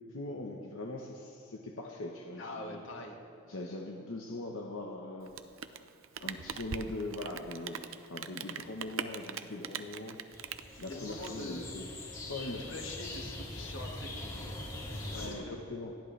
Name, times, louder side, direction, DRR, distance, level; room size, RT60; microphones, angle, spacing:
voice 1, 0.0-2.8 3.5-5.3 6.2-7.8 8.1-10.2 10.8-11.9 12.3-12.7 15.0-15.9, left 2 dB, 90° left, 0 dB, 1.1 m, -41 dB
voice 2, 2.4-3.2 10.7-11.8 12.6-14.6 14.9-15.6, left 2 dB, 65° left, 1 dB, 1.9 m, -44 dB
Rain, 5.2-12.0, right 8 dB, 85° right, 0.6 m, -42 dB
sound 1, 10.3-15.3, left 1 dB, 25° left, 3.5 m, -42 dB
28.5 x 10.5 x 3.3 m, 2.5 s
head